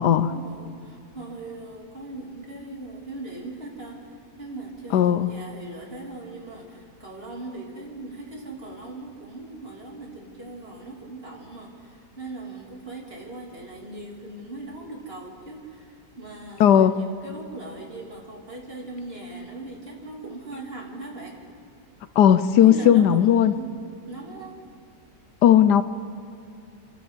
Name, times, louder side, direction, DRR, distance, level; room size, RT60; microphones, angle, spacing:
voice 1, 0.0-21.4 22.6-23.8 24.1-24.5, right 2 dB, 35° right, -2 dB, 3.3 m, -39 dB
voice 2, 4.9-5.3 16.6-17.0 22.2-23.5 25.4-25.8, left 9 dB, 75° left, 13 dB, 1.2 m, -16 dB
28.5 x 11.5 x 8.2 m, 2.7 s
omnidirectional pair, 1.9 m